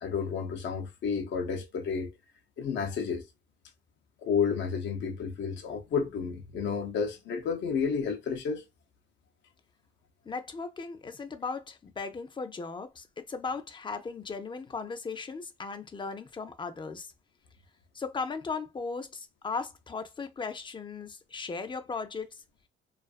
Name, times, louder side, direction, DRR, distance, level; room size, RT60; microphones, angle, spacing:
voice 1, 0.0-2.1 2.6-3.2 4.2-8.6, left 6 dB, 65° left, 0.7 m, -31 dB
voice 2, 10.2-17.1 17.9-22.4, left 4 dB, 25° left, 0.5 m, -37 dB
2.4 x 2.4 x 2.4 m
cardioid pair, 90°, 20 cm